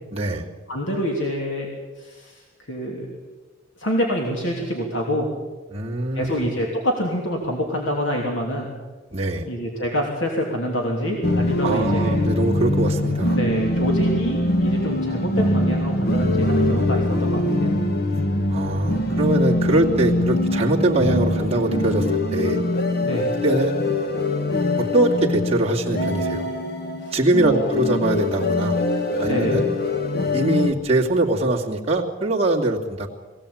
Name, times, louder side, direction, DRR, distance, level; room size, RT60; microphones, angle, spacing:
voice 1, 0.1-0.5 5.7-6.5 9.1-9.5 11.6-13.4 18.5-22.6 23.4-23.8 24.8-26.5 27.1-28.8 29.2-29.7 30.3-33.1, right 2 dB, 30° right, -4 dB, 2.8 m, -22 dB
voice 2, 0.7-1.7 2.0-3.2 3.8-5.3 6.1-8.7 9.5-12.1 13.3-17.7 23.0-23.3 27.0-27.7 29.2-29.6, equal, 70° left, -1 dB, 3.1 m, -26 dB
sound 1, 11.2-30.7, left 1 dB, 55° left, 1.7 m, -23 dB
23.0 x 17.0 x 8.8 m, 1.3 s
head